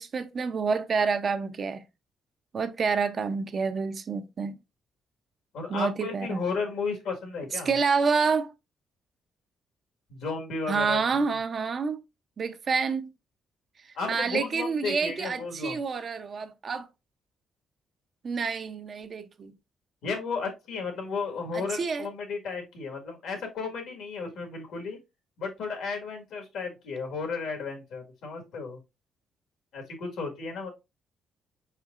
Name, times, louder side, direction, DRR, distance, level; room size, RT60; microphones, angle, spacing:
voice 1, 0.0-1.8 2.5-4.6 5.7-6.4 7.5-8.5 10.7-12.0 12.4-13.1 13.8-16.9 18.2-19.5 21.5-22.1, right 5 dB, 45° right, 0.5 m, -28 dB
voice 2, 5.5-7.7 10.1-11.2 13.9-15.8 20.0-25.0 25.4-28.8 29.7-30.7, left 4 dB, 80° left, 1.5 m, -34 dB
4.6 x 4.4 x 2.4 m
cardioid pair, 90°, 0 cm